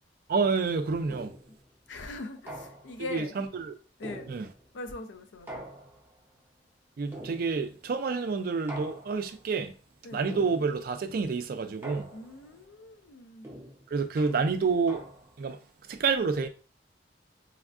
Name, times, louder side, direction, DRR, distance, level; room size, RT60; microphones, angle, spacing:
voice 1, 0.3-1.3 3.1-3.7 4.3-4.5 7.0-9.7 10.1-12.1 13.9-15.0 15.4-15.6 15.9-16.5, right 4 dB, 50° right, 0.3 m, -28 dB
sound 1, 1.1-1.6 2.5-3.1 4.0-4.8 5.5-6.3 7.1-7.8 8.7-9.4 10.3-10.9 11.8-12.5 13.4-15.5, right 1 dB, 10° right, 0.6 m, -45 dB
voice 2, 1.9-3.3 4.0-4.3 4.7-5.7 10.0-10.3 12.1-13.5, left 2 dB, 80° left, 0.5 m, -41 dB
3.4 x 2.3 x 2.4 m
head